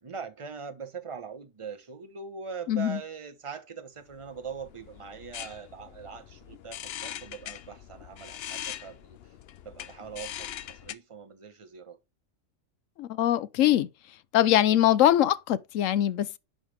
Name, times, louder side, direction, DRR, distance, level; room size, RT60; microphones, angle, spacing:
voice 1, 0.0-9.4 9.6-12.0, right 6 dB, 25° right, 0.9 m, -42 dB
voice 2, 2.7-3.0 13.0-13.9 14.3-16.4, left 12 dB, 90° left, 1.0 m, -22 dB
sound 1, 4.1-10.9, left 10 dB, 60° left, 0.7 m, -42 dB
10.5 x 5.1 x 3.4 m
omnidirectional pair, 1.3 m